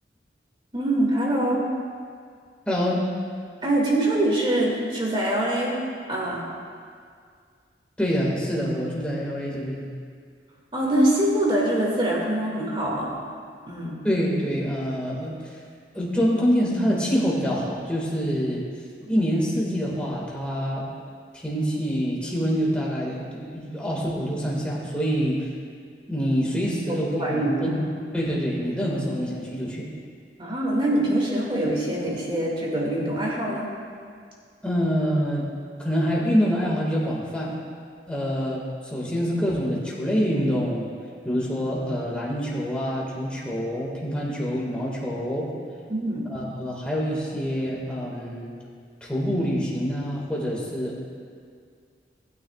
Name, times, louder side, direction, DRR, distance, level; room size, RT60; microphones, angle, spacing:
voice 1, 0.7-1.8 3.6-5.8 6.1-6.4 10.7-13.2 13.7-14.0 19.0-19.1 26.9-27.8 30.4-33.7 45.9-46.3, right 1 dB, 30° right, -3 dB, 2.3 m, -24 dB
voice 2, 2.7-3.1 8.0-9.9 14.0-15.5 15.9-18.6 19.1-20.9 21.3-25.4 26.1-27.7 28.1-29.9 34.6-35.5 35.8-37.5 38.1-40.9 41.2-45.5 46.3-48.5 49.0-51.0, equal, 5° left, -5 dB, 2.1 m, -26 dB
19.5 x 9.4 x 2.5 m, 2.1 s
head